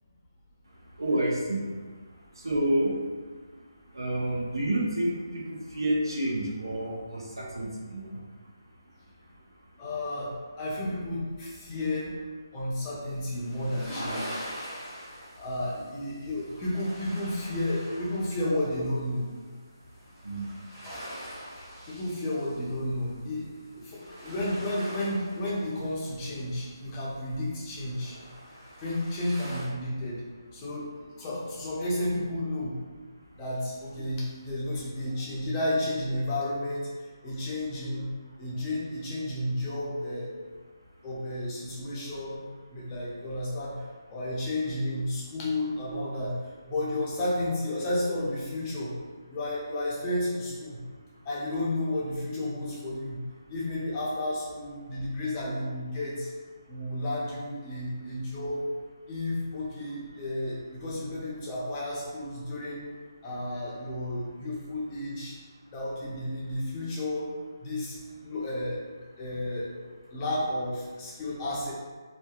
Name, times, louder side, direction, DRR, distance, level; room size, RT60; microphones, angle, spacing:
voice 1, 1.0-1.6 2.4-3.0 3.9-8.2 20.2-20.6, right 1 dB, 90° right, -3 dB, 0.6 m, -29 dB
voice 2, 9.8-12.1 12.5-14.5 15.4-19.3 21.9-28.2 28.8-30.2 30.5-32.8 33.4-36.9 37.2-38.1 38.4-40.4 41.0-42.4 42.7-46.4 46.7-48.9 49.3-50.8 51.2-56.3 56.7-58.7 59.1-62.9 63.2-65.4 65.7-67.3 67.6-68.8 69.2-69.7 70.1-71.7, left 1 dB, 20° left, -6 dB, 0.5 m, -32 dB
sound 1, 13.1-19.6 19.8-29.6, equal, 5° right, 0.9 m, -44 dB
2.6 x 2.2 x 2.2 m, 1.5 s
figure-of-eight pair, 155°, 2 cm